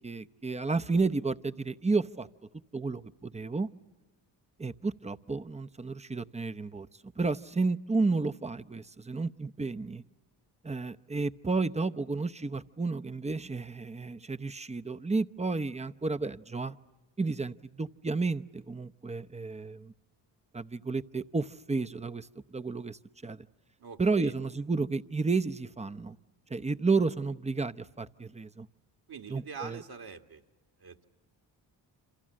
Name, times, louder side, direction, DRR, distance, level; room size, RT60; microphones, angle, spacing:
voice 1, 0.0-2.3 2.7-3.7 4.6-6.9 7.2-10.0 10.6-16.8 17.2-19.9 20.5-22.3 22.5-23.5 24.0-26.2 26.5-28.7 29.3-29.8, right 3 dB, 15° right, 12 dB, 0.8 m, -31 dB
voice 2, 23.8-24.3 29.1-30.4 30.8-31.1, right 6 dB, 50° right, 6 dB, 2.0 m, -44 dB
28.0 x 27.0 x 7.6 m, 1.2 s
supercardioid pair, 50°, 48 cm